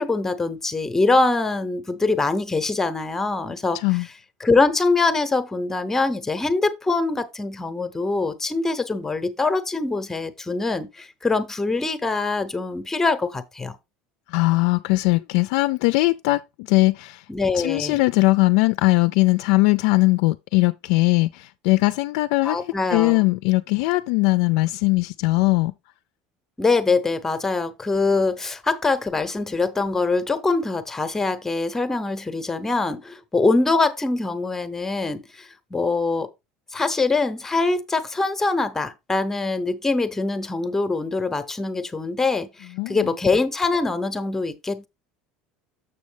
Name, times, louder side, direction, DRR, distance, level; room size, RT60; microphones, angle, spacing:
voice 1, 0.0-3.8 4.4-13.8 17.3-18.0 22.4-23.2 26.6-36.3 36.7-44.9, left 3 dB, 15° left, 0.7 m, -23 dB
voice 2, 14.3-17.2 17.6-22.6 22.9-25.7 42.8-43.1, left 22 dB, 75° left, 0.3 m, -20 dB
7.0 x 6.2 x 3.3 m
supercardioid pair, 130°, 3 cm